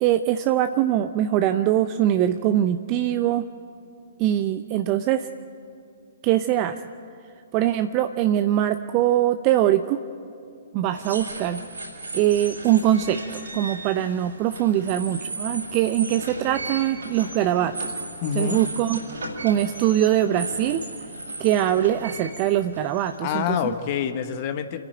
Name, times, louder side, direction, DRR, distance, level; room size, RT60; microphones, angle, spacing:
voice 1, 0.0-3.4 4.2-5.3 6.2-6.8 7.5-10.0 10.7-11.6 12.1-17.9 18.3-19.0 19.4-20.8 21.4-23.7, right 12 dB, 30° right, 10 dB, 0.6 m, -22 dB
sound 1, 10.9-23.7, right 2 dB, 70° right, 5.4 m, -36 dB
voice 2, 18.2-18.6 23.2-24.8, left 9 dB, 40° left, 8 dB, 1.3 m, -26 dB
29.0 x 10.5 x 8.9 m, 2.4 s
figure-of-eight pair, 120°, 0 cm